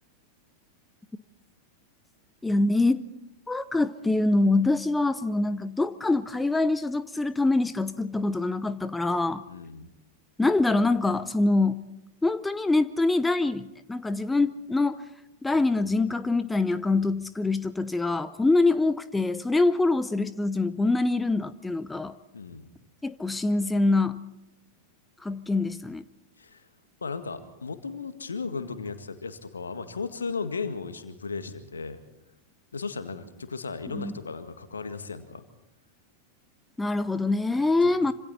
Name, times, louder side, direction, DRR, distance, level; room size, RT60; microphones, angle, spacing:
voice 1, 2.4-3.0 3.5-9.4 10.4-11.8 12.2-15.0 15.4-22.2 23.0-24.2 25.2-26.0 33.9-34.1 36.8-38.1, left 2 dB, 10° left, 0.7 m, -24 dB
voice 2, 9.5-9.9 22.3-22.6 26.4-26.7 27.0-32.0 32.7-35.4 37.8-38.1, left 4 dB, 75° left, 1.9 m, -36 dB
26.5 x 26.0 x 4.3 m
figure-of-eight pair, 90°, 0 cm